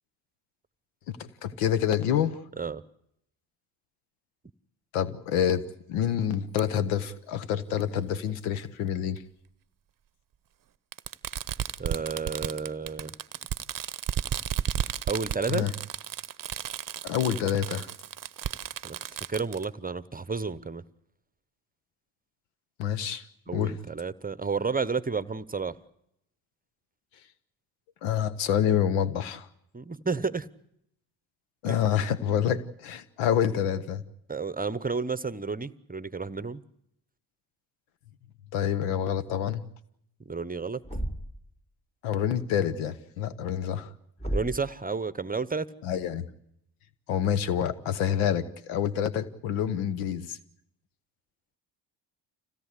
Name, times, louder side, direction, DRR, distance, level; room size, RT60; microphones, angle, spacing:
voice 1, 1.1-2.4 4.9-9.2 15.5-15.7 17.0-17.9 22.8-23.2 23.5-23.7 28.0-29.5 31.6-34.0 38.5-39.6 42.0-43.9 45.8-46.2 47.1-50.4, left 9 dB, 85° left, 1.1 m, -27 dB
Fireworks, 6.6-6.7 7.8-7.9 9.2-9.3 10.9-19.6, right 10 dB, 45° right, 0.8 m, -33 dB
voice 2, 11.8-13.1 15.1-15.7 18.8-19.0 19.3-20.8 23.5-25.8 29.7-30.5 31.6-31.8 34.3-36.6 40.3-40.8 44.3-45.7, right 4 dB, 20° right, 1.0 m, -31 dB
Thump thud, 40.8-41.5 44.2-44.7, right 1 dB, 15° left, 1.9 m, -32 dB
26.0 x 17.0 x 8.3 m
hypercardioid pair, 50°, 49 cm